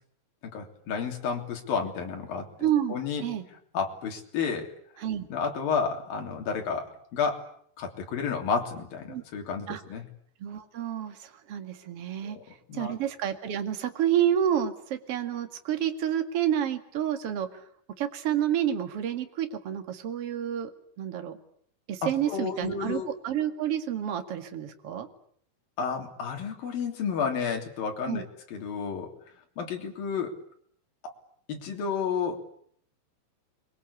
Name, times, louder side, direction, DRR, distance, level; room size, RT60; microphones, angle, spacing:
voice 1, 0.4-2.5 2.9-3.2 3.7-4.7 5.3-7.4 7.8-10.0 12.2-12.4 12.7-12.9 22.0-23.1 25.8-28.2 28.5-29.1 29.6-30.3 31.0-31.1 31.5-32.4, left 6 dB, 55° left, 3 dB, 4.8 m, -31 dB
voice 2, 2.6-3.5 5.0-5.3 9.1-9.2 9.7-9.8 10.4-12.4 12.7-17.6 18.0-20.7 21.0-21.4 21.9-25.1 28.1-28.2, right 10 dB, 45° right, 7 dB, 2.2 m, -29 dB
28.5 x 23.5 x 8.4 m, 0.64 s
omnidirectional pair, 5.2 m